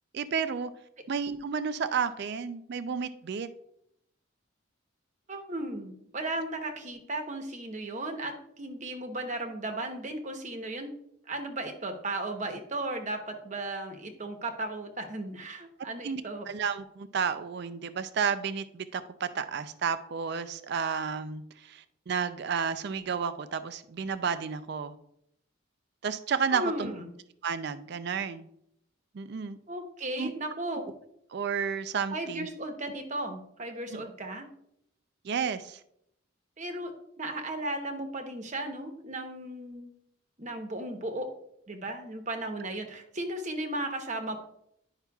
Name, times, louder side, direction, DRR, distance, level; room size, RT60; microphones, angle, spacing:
voice 1, 0.1-0.7 1.1-3.5 16.0-16.2 16.5-24.9 26.0-26.9 27.4-28.5 29.1-29.6 30.2-30.3 31.3-32.5 33.9-34.0 35.2-35.8, right 6 dB, 50° right, 12 dB, 0.4 m, -31 dB
voice 2, 5.3-10.9 11.3-16.5 26.5-27.1 29.7-30.8 32.1-34.5 36.6-36.9 37.2-39.9 40.4-41.3 41.7-44.4, right 2 dB, 35° right, 5 dB, 0.9 m, -35 dB
10.5 x 5.6 x 2.3 m, 0.74 s
head